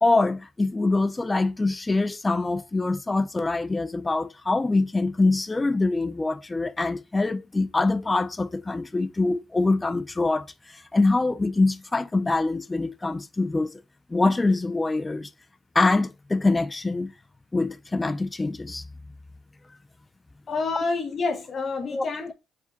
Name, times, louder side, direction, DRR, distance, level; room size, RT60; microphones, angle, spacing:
voice 1, 0.0-13.7 14.1-15.3 15.7-17.1 17.5-18.8 21.9-22.1, left 3 dB, 20° left, 0.5 m, -24 dB
voice 2, 20.5-22.3, left 4 dB, 45° left, 0.9 m, -28 dB
5.0 x 2.3 x 4.0 m
cardioid pair, 90°, 0 cm